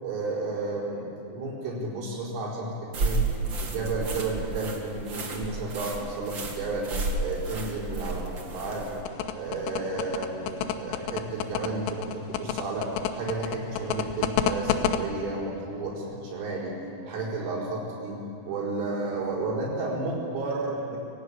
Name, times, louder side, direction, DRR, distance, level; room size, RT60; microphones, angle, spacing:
voice 1, 0.0-3.3 3.6-6.9 7.2-9.0 9.3-16.8 17.1-21.0, right 3 dB, 90° right, -6 dB, 7.3 m, -32 dB
sound 1, 2.9-9.0, right 3 dB, 45° right, 1.5 m, -32 dB
sound 2, 9.1-15.0, left 10 dB, 90° left, 3.6 m, -28 dB
25.0 x 17.5 x 8.8 m, 2.7 s
omnidirectional pair, 5.6 m